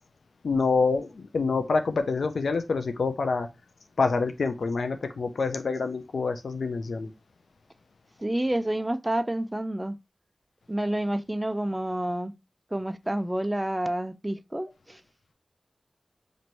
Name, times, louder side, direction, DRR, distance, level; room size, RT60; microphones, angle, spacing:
voice 1, 0.4-3.5 4.0-7.1, left 4 dB, 90° left, 0.4 m, -26 dB
voice 2, 8.2-10.0 10.7-12.3 12.7-15.0, right 1 dB, 20° right, 0.4 m, -29 dB
3.1 x 2.5 x 4.3 m
cardioid pair, 40°, 0 cm